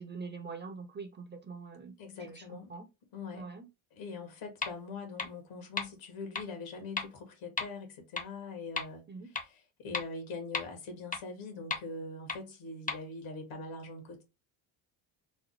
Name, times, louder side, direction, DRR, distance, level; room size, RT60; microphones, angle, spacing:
voice 1, 0.0-2.9 3.3-3.7 9.1-9.3, right 4 dB, 20° right, 0.7 m, -44 dB
voice 2, 2.0-2.7 3.1-3.5 3.9-9.0 9.3-14.2, left 3 dB, 75° left, 1.9 m, -43 dB
sound 1, 4.6-4.7 5.2-5.3 5.8-5.9 6.3-6.4 7.0-7.1 7.6-7.7 8.2-8.3 8.8-8.9 9.3-9.4 9.9-10.0 10.5-10.6 11.1-11.2 11.7-11.8 12.3-12.4 12.9-13.0, left 4 dB, 15° left, 0.8 m, -33 dB
4.2 x 2.1 x 3.0 m
supercardioid pair, 80°, 49 cm